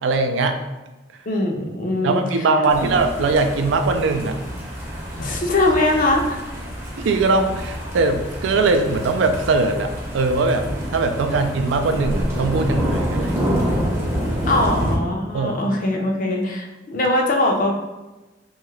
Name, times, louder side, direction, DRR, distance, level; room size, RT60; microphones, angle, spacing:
voice 1, 0.0-0.6 2.0-4.4 7.0-13.4 14.5-14.6 15.3-15.6, right 3 dB, 75° right, 6 dB, 0.3 m, -21 dB
voice 2, 1.3-2.5 2.8-2.9 5.2-6.4 11.3-11.4 14.5-17.7, left 2 dB, 45° left, 1 dB, 0.5 m, -21 dB
sound 1, 2.7-15.0, equal, 15° right, 0.6 m, -27 dB
2.7 x 2.4 x 3.1 m, 1.1 s
head